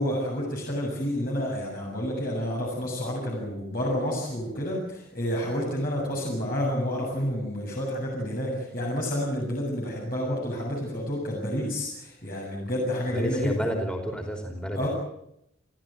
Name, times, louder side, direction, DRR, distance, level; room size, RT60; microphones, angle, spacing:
voice 1, 0.0-13.7 14.7-14.9, equal, 45° left, -3 dB, 7.6 m, -29 dB
voice 2, 13.1-14.9, equal, 5° left, 4 dB, 4.6 m, -31 dB
29.5 x 14.0 x 9.1 m, 0.78 s
head